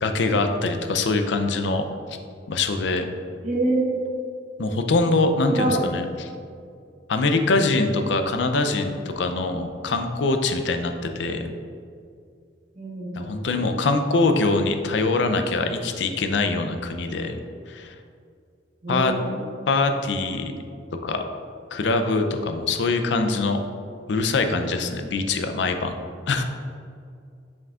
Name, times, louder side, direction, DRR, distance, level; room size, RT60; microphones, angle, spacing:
voice 1, 0.0-1.8 2.5-3.1 4.6-6.3 7.1-11.5 13.2-17.4 17.7-17.9 18.9-19.1 19.7-20.5 21.0-21.2 21.7-23.6 24.1-26.0 26.3-26.4, left 3 dB, 75° left, 7 dB, 0.5 m, -23 dB
voice 2, 3.4-4.0 5.5-5.8 12.8-13.6 18.8-19.4, right 2 dB, 45° right, -3 dB, 1.2 m, -26 dB
7.2 x 6.0 x 2.4 m, 2.3 s
head